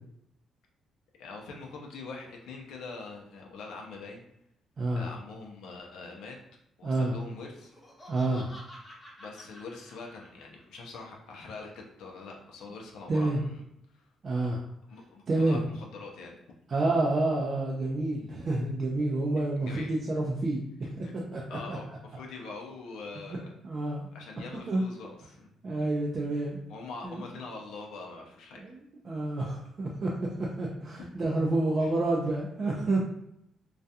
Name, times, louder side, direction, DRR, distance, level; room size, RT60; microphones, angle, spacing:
voice 1, 1.2-4.2 4.9-6.4 6.8-7.7 9.2-13.6 13.9-14.1 14.9-16.4 19.6-20.0 20.8-21.1 21.5-23.5 24.1-25.5 26.7-28.7 31.8-31.9, left 3 dB, 85° left, 0 dB, 0.5 m, -43 dB
voice 2, 4.8-5.1 6.8-7.1 8.1-8.5 13.1-13.4 14.2-14.6 15.3-15.7 16.7-20.6 21.0-21.8 23.3-23.4 23.6-24.1 24.7-24.8 25.6-26.6 27.0-27.2 28.5-33.0, right 2 dB, 45° right, -2 dB, 0.4 m, -29 dB
Laughter, 7.6-10.8, equal, 15° left, 0.9 m, -50 dB
2.3 x 2.2 x 2.7 m, 0.79 s
cardioid pair, 90°, 0 cm